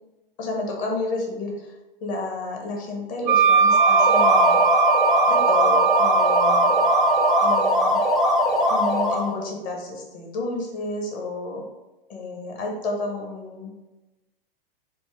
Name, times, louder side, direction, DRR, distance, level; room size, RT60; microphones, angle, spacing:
voice 1, 0.4-1.7 2.0-4.6 5.3-6.7 7.4-8.0 8.7-11.6 12.1-13.7, left 3 dB, 30° left, 0 dB, 0.8 m, -31 dB
Wind instrument woodwind instrument, 3.3-7.8, right 7 dB, 50° right, 0.5 m, -20 dB
sound 1, 3.6-9.3, left 1 dB, ahead, 0.5 m, -20 dB
4.2 x 2.0 x 3.1 m, 1.0 s
figure-of-eight pair, 105°, 29 cm